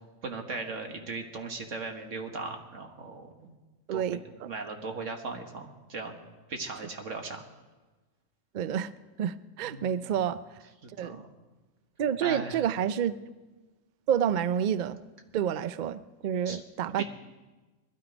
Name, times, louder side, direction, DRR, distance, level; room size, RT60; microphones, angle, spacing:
voice 1, 0.2-3.6 3.9-6.2 6.5-7.4 9.6-10.2 10.8-11.2 12.2-12.6 16.4-16.6 17.0-17.1, right 3 dB, 70° right, 3 dB, 1.7 m, -38 dB
voice 2, 3.9-4.5 8.5-8.9 9.2-10.4 11.0-11.2 12.0-13.2 14.1-15.0 15.3-17.0, right 9 dB, 55° right, 15 dB, 0.5 m, -29 dB
21.0 x 13.0 x 5.0 m, 1.2 s
omnidirectional pair, 1.3 m